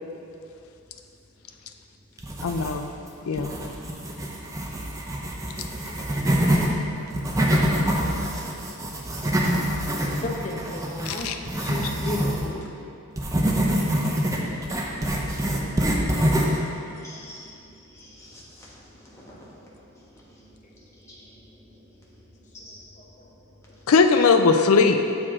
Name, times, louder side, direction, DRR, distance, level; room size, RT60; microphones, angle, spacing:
sound 1, 2.2-3.0 3.4-6.7 7.1-12.4 13.2-16.6, equal, 15° right, 0.5 m, -25 dB
voice 1, 2.4-2.9 3.3-3.5 11.1-11.4 23.9-25.0, left 4 dB, 75° left, 6 dB, 0.4 m, -19 dB
voice 2, 5.9-6.7 9.4-11.3 11.6-12.6 13.9-14.0 19.3-19.4 23.0-23.3 23.7-23.8, left 1 dB, 35° left, -1 dB, 0.7 m, -37 dB
voice 3, 16.8-17.5 17.9-19.5 20.3-20.5 21.0-21.4 22.6-22.8, left 1 dB, 15° left, -6 dB, 1.1 m, -47 dB
7.4 x 4.8 x 3.7 m, 2.7 s
head